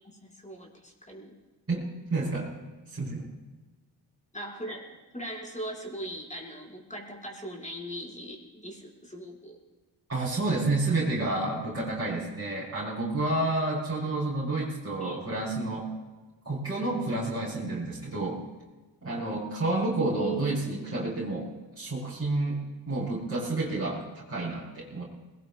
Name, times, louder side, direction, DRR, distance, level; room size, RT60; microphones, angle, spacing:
voice 1, 0.2-1.3 4.3-9.6 15.0-15.2 20.1-20.9, right 1 dB, 15° left, -1 dB, 5.7 m, -39 dB
voice 2, 1.7-2.5 2.9-3.3 10.1-15.9 16.4-18.4 19.0-21.5 21.7-25.0, right 2 dB, 30° right, -8 dB, 4.9 m, -30 dB
21.5 x 19.5 x 2.5 m, 1.3 s
supercardioid pair, 50°, 46 cm